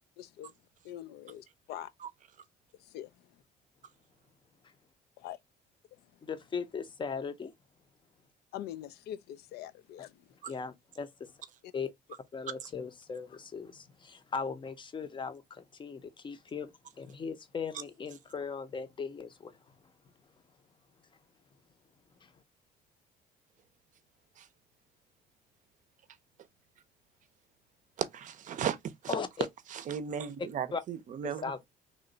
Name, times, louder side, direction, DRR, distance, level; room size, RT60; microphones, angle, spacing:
voice 1, 0.2-0.5 0.8-1.9 2.9-3.1 5.2-5.4 8.5-10.1, left 11 dB, 75° left, 0.4 m, -43 dB
voice 2, 6.2-7.5 10.0-11.3 11.7-11.9 12.3-19.9 22.2-22.4 29.1-29.5 30.4-30.8 31.2-31.7, left 5 dB, 30° left, 0.6 m, -39 dB
voice 3, 28.0-28.8 29.0-29.1 29.9-31.4, right 8 dB, 50° right, 0.5 m, -35 dB
3.0 x 2.1 x 3.8 m
cardioid pair, 110°, 17 cm